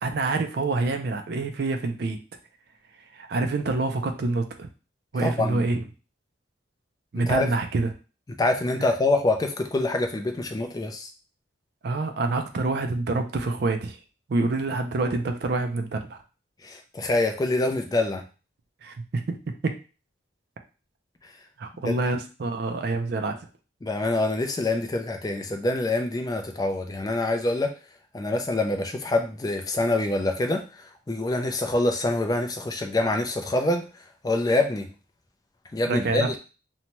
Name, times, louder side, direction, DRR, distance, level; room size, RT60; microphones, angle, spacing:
voice 1, 0.0-2.2 3.1-4.7 5.1-5.8 7.1-7.9 8.8-8.9 11.8-14.0 14.3-16.2 18.8-19.8 21.6-23.3 35.9-36.3, right 3 dB, 55° right, 6 dB, 0.4 m, -27 dB
voice 2, 5.2-5.6 7.1-7.5 8.4-11.1 16.6-18.2 21.2-21.3 21.8-21.9 23.8-27.7 28.1-33.8 34.2-34.9 35.7-36.3, left 2 dB, 20° left, 5 dB, 0.3 m, -25 dB
2.8 x 2.2 x 2.9 m, 0.33 s
head